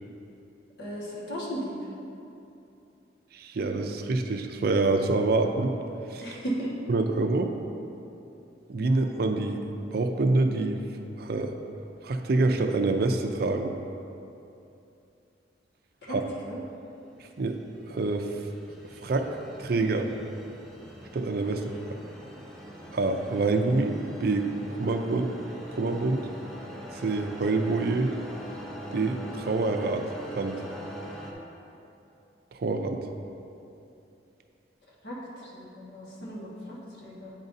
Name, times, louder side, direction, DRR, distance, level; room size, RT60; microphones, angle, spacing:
voice 1, 0.8-1.8 6.2-6.7 16.0-16.1 16.5-16.6 35.0-37.3, right 1 dB, 70° left, -6 dB, 1.4 m, -36 dB
voice 2, 3.3-5.7 6.1-6.2 6.9-7.5 8.7-9.6 9.9-10.8 11.2-11.5 12.0-13.7 16.1-16.3 17.4-17.6 17.8-18.5 19.0-19.3 19.6-20.1 21.1-21.6 22.9-24.5 24.8-25.3 25.7-26.3 27.0-28.1 28.9-30.0 30.4-30.6 32.5-33.0, right 3 dB, 60° right, 5 dB, 0.4 m, -26 dB
sound 1, 17.2-31.3, equal, ahead, 0.6 m, -43 dB
8.9 x 5.3 x 2.6 m, 2.8 s
head